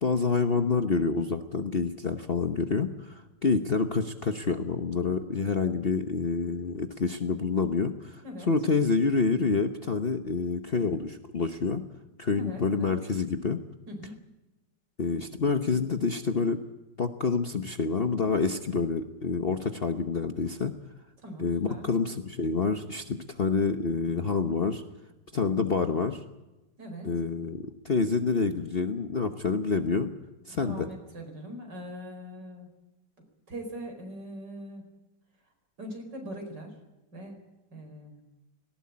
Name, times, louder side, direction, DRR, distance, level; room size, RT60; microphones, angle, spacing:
voice 1, 0.0-11.8 12.2-13.6 15.0-16.6 17.0-20.7 21.4-24.8 25.3-26.2 27.0-30.1 30.5-30.9, left 4 dB, 40° left, 7 dB, 1.0 m, -27 dB
voice 2, 12.3-12.9 13.9-14.2 21.2-21.9 26.8-27.1 30.5-32.8 33.5-34.8 35.8-36.8 37.1-37.4 37.7-38.2, equal, 70° right, 4 dB, 5.4 m, -41 dB
18.5 x 18.5 x 8.6 m, 1.0 s
omnidirectional pair, 2.0 m